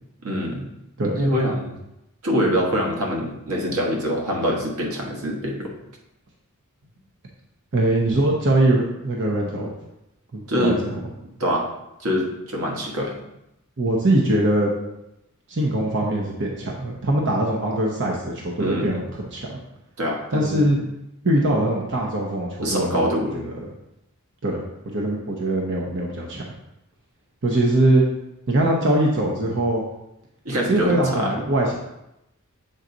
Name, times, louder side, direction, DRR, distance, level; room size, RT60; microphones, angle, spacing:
voice 1, 0.2-0.7 1.2-1.8 2.2-5.7 10.5-10.8 11.4-11.7 12.0-13.1 18.6-19.0 20.0-20.8 22.6-23.4 30.4-31.3, equal, 90° right, 0 dB, 1.4 m, -24 dB
voice 2, 7.7-9.7 10.3-11.0 13.8-14.7 15.5-19.5 20.3-20.8 21.2-23.5 24.4-24.6 24.9-26.4 27.4-28.1 28.5-29.8 30.7-31.7, right 1 dB, 60° right, -2 dB, 0.9 m, -22 dB
7.5 x 4.0 x 3.9 m, 0.87 s
head